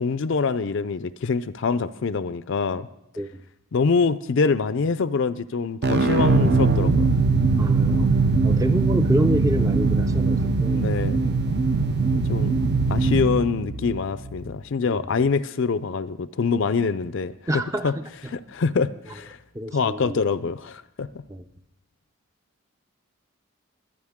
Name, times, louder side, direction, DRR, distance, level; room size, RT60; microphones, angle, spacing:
voice 1, 0.0-2.9 3.7-7.1 10.8-11.2 12.1-12.5 12.9-17.3 17.8-17.9 18.3-19.4 19.7-21.1, left 5 dB, 60° left, 13 dB, 0.5 m, -25 dB
sound 1, 5.8-14.5, right 3 dB, 50° right, 0.7 m, -21 dB
voice 2, 7.6-8.1 8.4-11.6 12.5-13.0 14.9-15.0 17.5-18.3 19.5-20.2 21.3-21.4, right 1 dB, 15° right, 8 dB, 0.5 m, -28 dB
23.0 x 9.0 x 3.6 m, 0.83 s
head